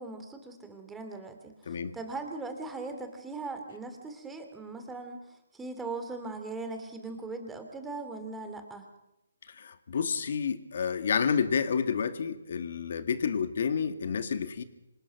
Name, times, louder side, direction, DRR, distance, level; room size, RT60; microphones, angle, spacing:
voice 1, 0.0-5.2 5.5-8.9, right 3 dB, 5° right, 5 dB, 2.7 m, -39 dB
voice 2, 1.7-2.0 9.5-14.6, left 6 dB, 55° left, 10 dB, 2.0 m, -30 dB
26.5 x 19.0 x 6.0 m, 0.92 s
hypercardioid pair, 150°, 0 cm